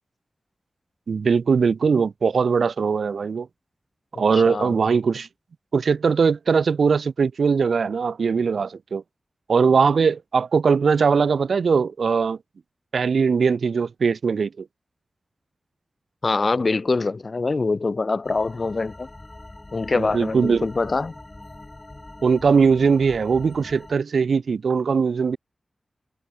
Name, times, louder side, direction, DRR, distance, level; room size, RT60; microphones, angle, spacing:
voice 1, 1.1-3.5 4.2-5.3 5.7-9.0 9.5-12.4 12.9-14.7 19.9-20.7 22.2-25.4, right 5 dB, 85° right, 0.7 m, -20 dB
voice 2, 4.3-4.8 16.2-19.1 19.7-21.2, left 3 dB, 50° left, 0.7 m, -24 dB
sound 1, 18.2-23.9, left 2 dB, 25° left, 5.1 m, -43 dB
wide cardioid pair, 75°, 0 cm